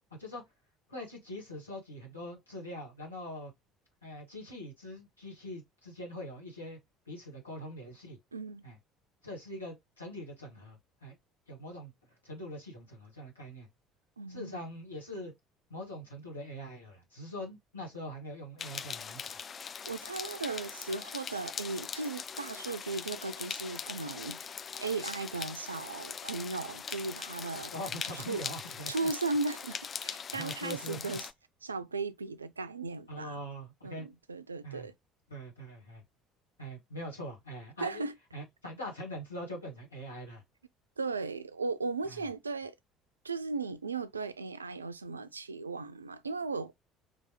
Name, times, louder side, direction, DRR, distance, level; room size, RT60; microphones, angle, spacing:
voice 1, 0.9-3.5 4.0-6.8 7.1-8.2 8.6-8.8 9.2-11.1 11.5-11.9 12.2-13.7 14.3-15.3 15.7-19.3 27.7-29.1 30.3-31.2 33.1-34.1 34.6-34.9 35.3-36.0 36.6-38.0 38.3-40.4 42.1-42.2, equal, 85° left, 1.7 m, -43 dB
voice 2, 8.3-8.6 14.2-14.6 19.9-24.5 24.8-27.7 28.2-28.4 28.9-29.8 30.0-31.3 31.6-33.4 33.8-34.9 37.8-38.2 41.0-42.7 43.2-46.8, right 3 dB, 85° right, 0.3 m, -36 dB
sound 1, 18.6-31.3, left 6 dB, 35° left, 0.4 m, -41 dB
4.3 x 3.2 x 3.1 m
figure-of-eight pair, 60°, 0 cm